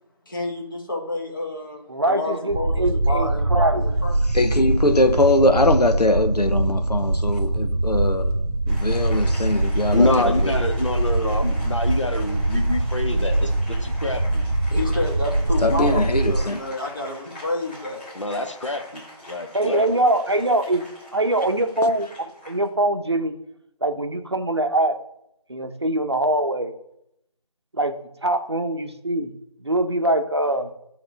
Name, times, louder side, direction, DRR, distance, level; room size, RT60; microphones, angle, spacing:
voice 1, 0.3-4.3 14.7-18.0, left 2 dB, 30° left, 1.6 m, -30 dB
voice 2, 1.9-3.8 19.5-20.8 21.1-23.4 23.8-25.0 25.5-26.7 27.7-28.0 28.2-29.3 29.6-30.7, right 1 dB, 45° right, 0.8 m, -23 dB
sound 1, 2.5-16.5, right 2 dB, 70° right, 0.8 m, -23 dB
voice 3, 4.3-8.3 8.7-10.3 15.6-16.6, left 2 dB, 85° left, 0.9 m, -21 dB
Applause, 8.7-22.7, equal, 15° left, 3.4 m, -43 dB
voice 4, 9.9-14.4 18.1-19.9, left 2 dB, 50° left, 1.1 m, -26 dB
10.0 x 3.7 x 6.0 m
figure-of-eight pair, 170°, 20 cm